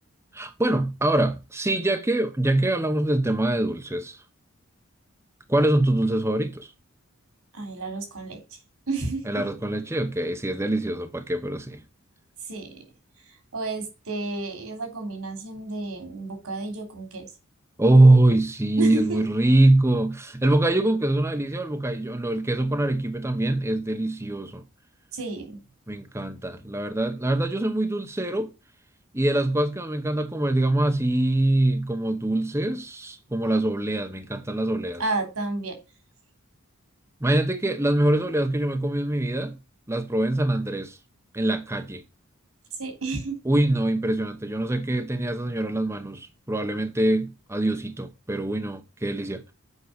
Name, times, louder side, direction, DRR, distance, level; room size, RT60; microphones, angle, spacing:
voice 1, 0.3-4.2 5.5-6.7 9.2-11.8 17.8-24.6 25.9-28.5 29.1-35.0 37.2-39.6 39.9-41.0 41.3-42.0 43.4-49.5, right 1 dB, 10° right, 0.9 m, -23 dB
voice 2, 7.5-8.4 8.9-9.2 12.5-12.8 13.5-17.3 18.8-19.2 25.1-25.6 35.0-35.8 42.8-43.4, right 3 dB, 80° right, 3.4 m, -31 dB
8.1 x 5.4 x 6.6 m
head